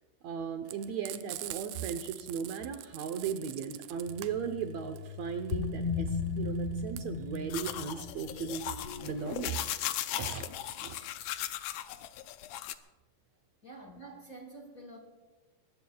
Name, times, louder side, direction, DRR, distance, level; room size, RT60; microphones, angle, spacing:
voice 1, 0.2-8.7 9.0-9.7 10.2-10.5 10.8-11.0, right 7 dB, 70° right, 6 dB, 1.8 m, -37 dB
Frying (food), 0.7-9.4, right 15 dB, 85° right, 2.2 m, -44 dB
sound 1, 4.1-9.5, left 4 dB, 60° left, 1.8 m, -37 dB
sound 2, 7.5-12.7, left 12 dB, 80° left, 1.6 m, -37 dB
voice 2, 13.6-15.0, right 2 dB, 35° left, 2 dB, 1.7 m, -48 dB
23.0 x 20.0 x 2.3 m, 1.2 s
omnidirectional pair, 3.7 m